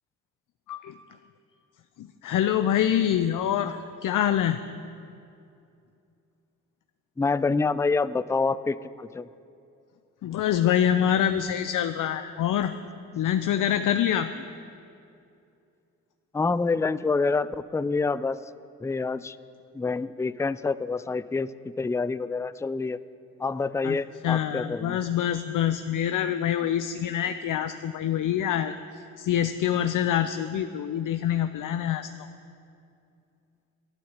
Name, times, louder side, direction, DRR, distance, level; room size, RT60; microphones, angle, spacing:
voice 1, 2.0-4.6 10.2-12.7 13.2-14.4 23.8-24.0 24.2-28.8 29.2-32.1, left 10 dB, 60° left, 9 dB, 0.6 m, -25 dB
voice 2, 7.2-9.3 16.3-18.4 18.8-19.4 19.7-21.5 21.8-23.0 23.4-25.0, left 4 dB, 10° left, 16 dB, 0.4 m, -27 dB
12.5 x 9.4 x 7.3 m, 2.5 s
hypercardioid pair, 45°, 36 cm